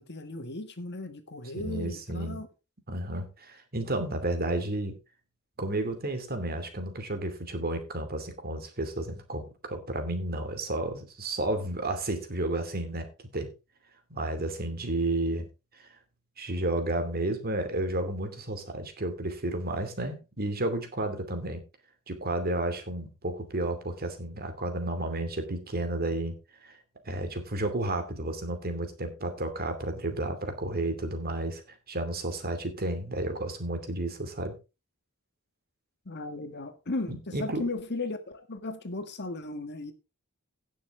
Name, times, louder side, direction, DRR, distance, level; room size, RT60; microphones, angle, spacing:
voice 1, 0.0-2.5 36.0-39.9, left 2 dB, 50° left, 1.6 m, -36 dB
voice 2, 1.6-2.4 2.9-5.0 5.6-13.1 13.3-13.5 14.1-15.5 16.4-21.6 22.1-26.3 26.6-26.8 27.0-34.6 37.1-37.6, right 1 dB, 45° right, 2.6 m, -32 dB
17.0 x 6.9 x 3.7 m
head